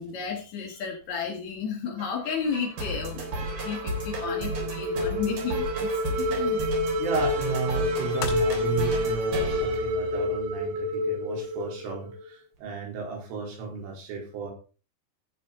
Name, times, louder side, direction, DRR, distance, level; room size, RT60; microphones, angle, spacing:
voice 1, 0.0-6.6, left 6 dB, 55° left, 1 dB, 2.1 m, -33 dB
sound 1, 2.0-10.6, right 2 dB, 45° right, 5.0 m, -34 dB
sound 2, 3.2-12.2, left 1 dB, 90° right, 4.4 m, -29 dB
voice 2, 7.0-14.5, right 5 dB, 70° right, 1 dB, 6.1 m, -34 dB
sound 3, 7.4-10.1 10.6-10.7, left 7 dB, 85° left, 4.8 m, -40 dB
15.5 x 7.7 x 3.9 m, 0.34 s
omnidirectional pair, 5.9 m